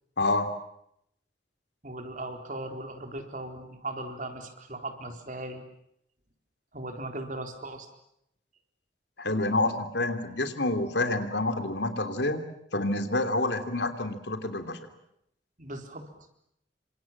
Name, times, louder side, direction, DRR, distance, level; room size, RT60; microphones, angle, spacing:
voice 1, 0.2-0.5 9.2-12.4 12.7-14.8, left 2 dB, 75° left, 9 dB, 3.1 m, -28 dB
voice 2, 1.8-5.6 6.7-7.9 15.6-16.0, right 2 dB, 45° right, 6 dB, 4.0 m, -38 dB
28.5 x 26.0 x 7.4 m, 0.75 s
head